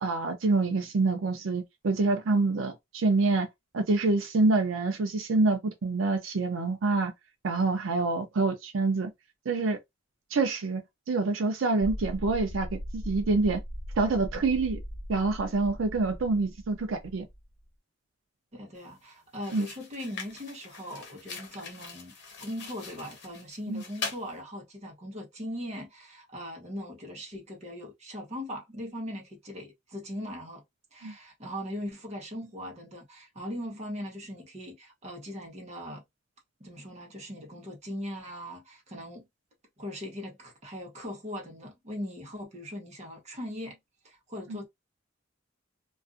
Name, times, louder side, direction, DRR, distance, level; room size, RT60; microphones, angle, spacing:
voice 1, 0.0-3.5 3.7-7.1 7.4-9.1 9.5-9.8 10.3-10.8 11.1-13.6 14.0-14.8 15.1-17.2 19.5-19.7 23.7-23.8 31.0-31.1 44.5-44.6, right 3 dB, 80° right, 0.5 m, -26 dB
sound 1, 11.8-17.6, equal, 30° left, 0.6 m, -39 dB
voice 2, 18.5-22.1 22.4-30.6 30.9-36.0 36.6-39.3 39.8-43.8 44.0-44.7, equal, 35° right, 0.9 m, -40 dB
sound 2, 18.7-18.9 19.3-24.3, left 4 dB, 60° left, 0.9 m, -42 dB
2.4 x 2.4 x 2.5 m
head